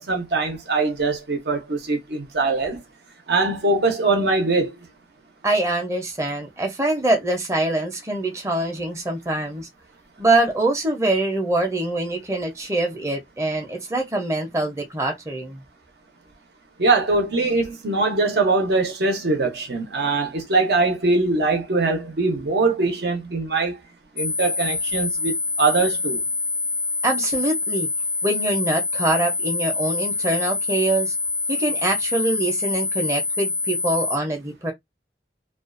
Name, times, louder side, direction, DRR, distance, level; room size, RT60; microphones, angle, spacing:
voice 1, 0.0-2.8 3.3-4.7 16.8-23.8 24.2-26.2, right 3 dB, 65° right, 0.7 m, -22 dB
voice 2, 5.4-9.7 10.2-15.6 27.0-27.9 28.2-31.1 31.5-34.7, right 2 dB, 15° right, 0.6 m, -24 dB
sound 1, 24.2-34.2, left 3 dB, 25° left, 0.4 m, -26 dB
2.4 x 2.3 x 2.4 m
head